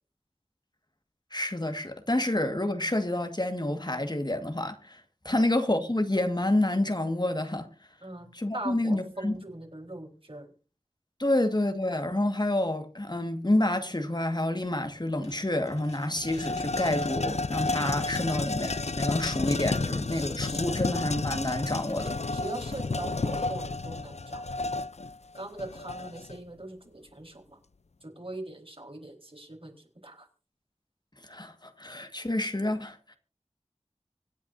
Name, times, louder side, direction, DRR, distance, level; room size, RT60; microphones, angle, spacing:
voice 1, 1.3-7.7 8.3-9.4 11.2-22.2 31.2-33.2, left 1 dB, 40° left, 1.7 m, -28 dB
voice 2, 8.5-10.5 18.1-18.4 19.8-20.6 22.3-24.4 25.3-27.6 28.0-29.7 30.0-30.3, right 1 dB, 55° right, 4.2 m, -41 dB
sound 1, 15.2-15.3 15.7-26.4, left 3 dB, 75° left, 0.5 m, -31 dB
25.0 x 9.6 x 2.7 m
wide cardioid pair, 45°, 11 cm